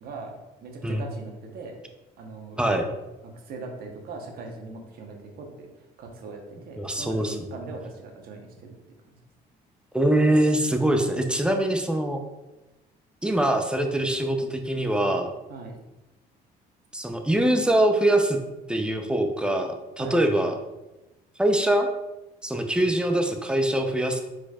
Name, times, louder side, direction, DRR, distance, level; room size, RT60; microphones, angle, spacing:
voice 1, 0.0-1.8 2.2-2.6 3.2-5.7 6.0-8.7 9.1-9.2 15.5-15.8 20.0-20.2, right 3 dB, 65° right, 2 dB, 1.0 m, -40 dB
voice 2, 6.8-7.4 9.9-12.2 13.2-15.3 16.9-18.4 18.7-20.5 21.4-21.9 22.4-24.2, right 1 dB, 5° right, 4 dB, 0.5 m, -23 dB
4.5 x 4.4 x 2.3 m, 1.0 s
cardioid pair, 110°, 17 cm